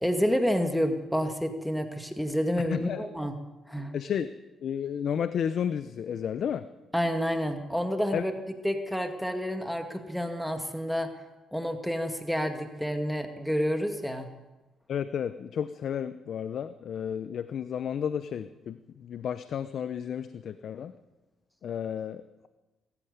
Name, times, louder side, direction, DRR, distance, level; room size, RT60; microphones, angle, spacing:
voice 1, 0.0-3.4 3.7-3.9 6.9-8.3 8.6-11.1 11.5-14.3, equal, ahead, 5 dB, 2.0 m, -29 dB
voice 2, 2.7-3.1 3.9-4.3 4.6-6.7 8.1-8.3 14.9-20.9 21.6-22.5, left 8 dB, 65° left, 12 dB, 0.8 m, -32 dB
20.0 x 14.0 x 9.5 m, 1.1 s
cardioid pair, 90°, 0 cm